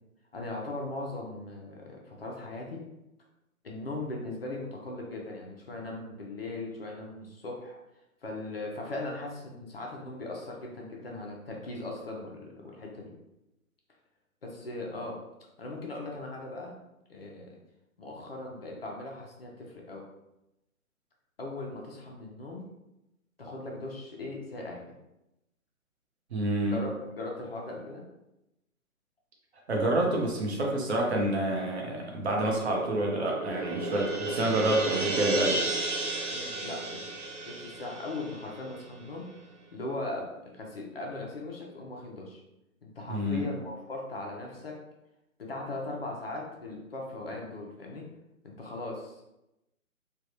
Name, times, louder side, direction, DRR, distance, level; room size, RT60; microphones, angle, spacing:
voice 1, 0.3-2.8 3.6-7.8 8.2-13.1 14.4-15.2 15.6-16.7 17.1-17.6 18.0-20.0 21.4-22.6 23.4-24.8 26.7-26.9 27.2-28.0 36.3-37.2 37.4-39.3 39.7-42.4 42.8-44.8 45.4-48.0 48.4-49.2, left 2 dB, 45° left, -1 dB, 0.6 m, -39 dB
voice 2, 26.3-26.9 29.7-35.6 43.1-43.5, right 1 dB, 50° right, -1 dB, 0.8 m, -28 dB
sound 1, 32.5-39.1, right 2 dB, 85° right, 0.7 m, -33 dB
3.3 x 2.3 x 2.7 m, 0.91 s
figure-of-eight pair, 145°, 43 cm